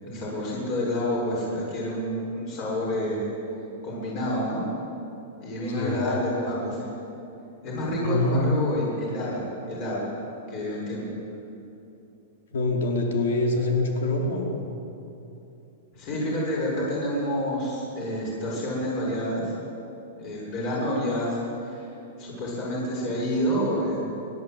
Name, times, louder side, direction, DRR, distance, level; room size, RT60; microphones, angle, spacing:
voice 1, 0.0-3.3 3.8-4.6 5.4-6.9 7.6-10.0 10.5-11.1 15.9-19.5 20.2-21.9 22.2-24.0, equal, 35° left, -5 dB, 6.9 m, -28 dB
voice 2, 5.7-6.1 8.0-8.4 12.5-14.7, left 2 dB, 80° left, 0 dB, 4.7 m, -25 dB
29.5 x 11.5 x 9.3 m, 2.9 s
supercardioid pair, 175°, 0 cm